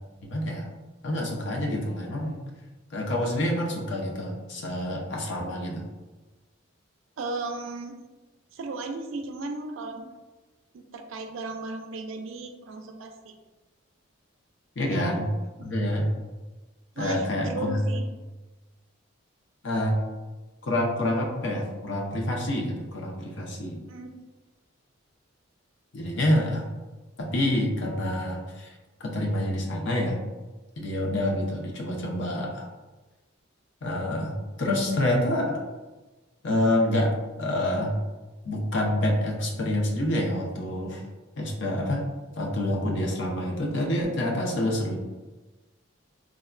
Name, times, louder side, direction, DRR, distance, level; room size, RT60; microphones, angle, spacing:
voice 1, 0.2-0.7 1.0-2.4 2.9-5.9 14.8-15.3 15.6-16.1 17.0-17.9 19.6-20.0 20.6-23.8 25.9-26.6 27.2-28.7 29.0-30.2 30.8-32.7 33.8-35.6 36.4-37.1 37.4-37.9 38.4-41.0 41.4-42.1 42.4-45.0, left 1 dB, 60° left, -1 dB, 0.6 m, -27 dB
voice 2, 7.2-8.0 8.5-10.1 10.7-13.3 14.8-15.0 17.0-18.1 23.9-24.1, right 3 dB, 70° right, 5 dB, 0.4 m, -35 dB
3.4 x 2.2 x 2.4 m, 1.2 s
head